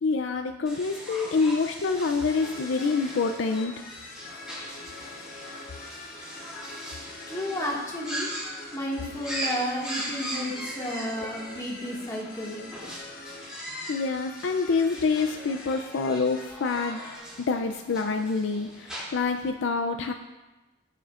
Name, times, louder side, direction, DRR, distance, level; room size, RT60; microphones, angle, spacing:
voice 1, 0.0-3.7 11.5-11.6 12.6-12.7 13.6-17.0 17.5-20.1, left 4 dB, 70° left, 6 dB, 0.4 m, -27 dB
sound 1, 0.7-19.5, equal, 5° right, 2.7 m, -40 dB
sound 2, 2.3-17.2, left 3 dB, 45° left, 1.1 m, -45 dB
voice 2, 7.3-8.3 8.7-12.6, equal, 15° left, -4 dB, 1.8 m, -32 dB
16.0 x 6.8 x 2.5 m, 1.1 s
head